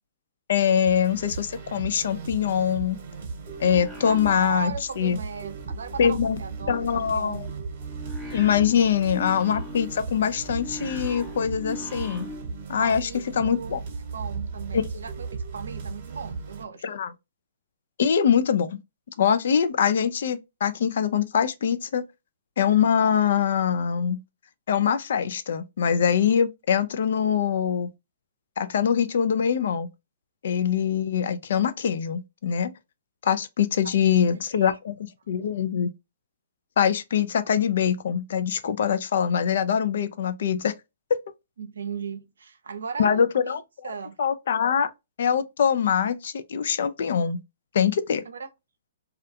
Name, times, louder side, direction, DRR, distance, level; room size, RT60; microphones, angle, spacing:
voice 1, 0.5-3.0 3.6-5.2 6.0-6.4 6.7-7.5 8.3-12.3 12.7-13.1 13.4-13.8 14.7-14.8 16.8-17.1 18.0-18.8 19.2-22.0 22.6-24.2 24.7-27.9 28.6-29.9 30.4-32.7 33.2-35.9 36.8-40.7 43.0-43.6 44.2-44.9 45.2-47.4 47.7-48.2, left 8 dB, 65° left, 0.3 m, -23 dB
sound 1, 0.9-16.6, right 4 dB, 50° right, 0.9 m, -37 dB
sound 2, 3.3-4.9 5.2-12.6, equal, 5° right, 0.6 m, -42 dB
voice 2, 4.0-7.4 8.7-9.0 12.8-13.8 14.1-17.0 33.8-33.9 34.5-34.8 41.6-44.2 48.3-48.5, right 5 dB, 80° right, 0.5 m, -37 dB
2.3 x 2.2 x 2.7 m
hypercardioid pair, 140°, 0 cm